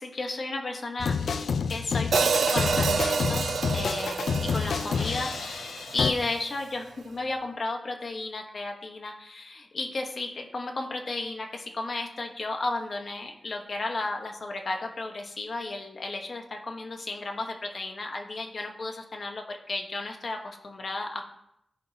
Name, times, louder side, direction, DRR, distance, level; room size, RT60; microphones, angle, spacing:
voice 1, 0.0-21.2, left 2 dB, 50° left, 3 dB, 1.2 m, -34 dB
sound 1, 1.0-6.1, left 5 dB, 80° left, 0.5 m, -29 dB
Hi-hat, 2.1-6.3, right 5 dB, 65° right, 0.3 m, -28 dB
14.5 x 5.1 x 2.8 m, 0.77 s
wide cardioid pair, 115°, 0 cm